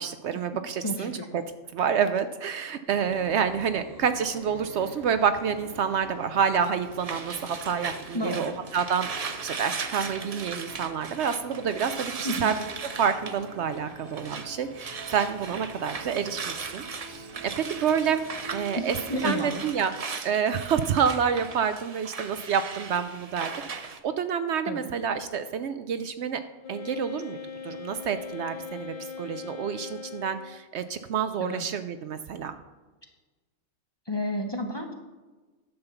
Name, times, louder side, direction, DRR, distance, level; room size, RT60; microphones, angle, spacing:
voice 1, 0.0-1.4 1.7-12.6 13.0-18.2 18.5-19.0 19.2-26.4 26.7-27.4 27.6-32.5, right 7 dB, 65° right, 10 dB, 0.8 m, -28 dB
voice 2, 0.8-1.3 8.1-8.4 12.2-12.5 18.8-19.6 24.7-24.9 31.4-31.6 34.1-34.9, left 1 dB, 20° left, 3 dB, 0.9 m, -31 dB
sound 1, 2.9-19.8, right 1 dB, 90° right, 2.0 m, -46 dB
sound 2, 6.5-14.5 14.7-24.0, right 5 dB, 40° right, 0.6 m, -38 dB
Wind instrument woodwind instrument, 26.6-30.7, left 6 dB, 45° left, 0.5 m, -40 dB
10.5 x 5.6 x 6.9 m, 1.3 s
omnidirectional pair, 1.3 m